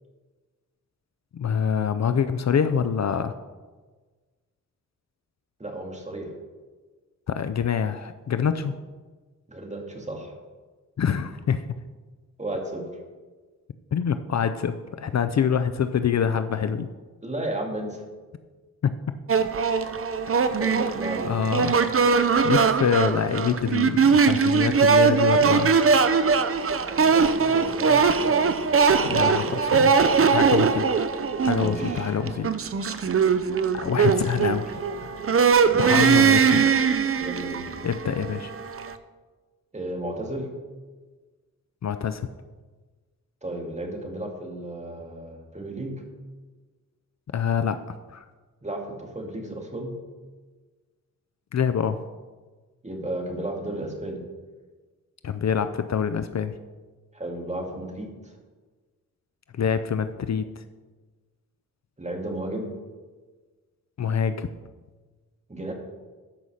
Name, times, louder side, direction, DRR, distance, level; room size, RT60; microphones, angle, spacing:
voice 1, 1.3-3.3 7.3-8.7 11.0-11.6 13.9-16.9 18.8-18.9 21.2-21.7 22.4-25.7 29.1-29.4 29.7-29.9 30.3-30.8 31.5-32.5 33.7-35.2 35.8-36.8 37.8-38.5 41.8-42.3 47.3-47.8 48.1-48.2 51.5-52.0 55.2-56.6 59.5-60.6 64.0-64.5, left 7 dB, 55° left, 10 dB, 0.5 m, -25 dB
voice 2, 5.6-6.3 9.5-10.3 12.4-12.8 17.2-18.0 20.6-21.3 26.9-29.5 31.5-32.2 35.7-36.3 37.2-37.7 39.7-40.5 43.4-46.0 48.6-49.9 52.8-54.2 57.1-58.3 62.0-62.7 65.5-65.7, right 1 dB, 20° right, 1 dB, 2.2 m, -33 dB
sound 1, 19.3-39.0, right 5 dB, 40° right, 0.7 m, -21 dB
13.5 x 5.6 x 6.4 m, 1.3 s
wide cardioid pair, 100°, 34 cm